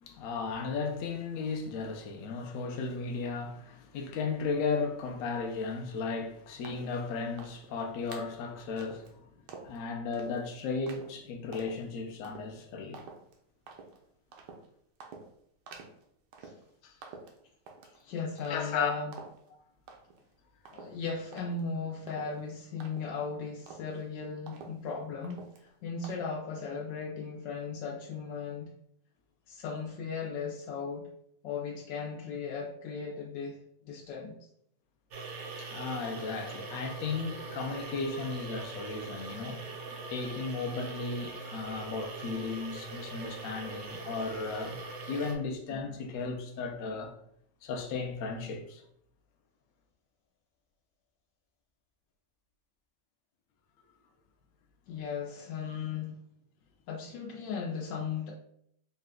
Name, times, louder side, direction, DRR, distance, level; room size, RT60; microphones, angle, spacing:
voice 1, 0.0-9.3 9.6-13.0 16.8-16.9 18.5-18.9 19.5-19.6 35.6-39.6 40.1-44.8 45.1-47.2 47.6-48.8, left 4 dB, 65° left, 0.8 m, -35 dB
sound 1, 6.6-7.0 7.4-7.7 8.1-8.4 8.8-9.1 9.5-9.8 10.1-10.4 10.9-11.1 11.5-11.8 12.2-12.5 12.9-13.3 13.7-14.0 14.3-14.7 15.0-15.3 15.7-16.0 16.3-16.7 17.0-18.0 18.4-18.8 19.1-19.5 19.9-20.3 20.6-23.3 23.7-24.0 24.5-24.9 25.2-25.7 26.0-26.1, right 5 dB, 75° right, 1.3 m, -49 dB
voice 2, 18.0-19.1 20.7-28.7 29.5-31.1 31.4-33.6 33.8-34.3 54.9-56.1 56.9-58.3, left 5 dB, 85° left, 1.3 m, -37 dB
sound 2, 35.1-45.3, right 3 dB, 60° right, 0.7 m, -42 dB
4.2 x 2.2 x 3.6 m
omnidirectional pair, 1.9 m